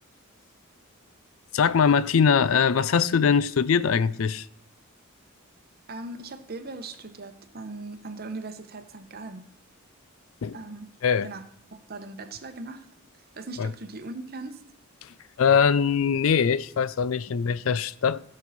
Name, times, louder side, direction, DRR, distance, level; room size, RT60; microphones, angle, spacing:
voice 1, 1.5-4.5 10.4-10.6 11.0-11.3 13.6-13.7 15.0-15.1 15.4-18.3, left 6 dB, 70° left, 0.4 m, -22 dB
voice 2, 5.9-9.4 10.5-10.9 11.2-11.4 11.7-12.9 13.3-14.6, right 2 dB, 45° right, 0.9 m, -39 dB
16.0 x 6.2 x 4.2 m
head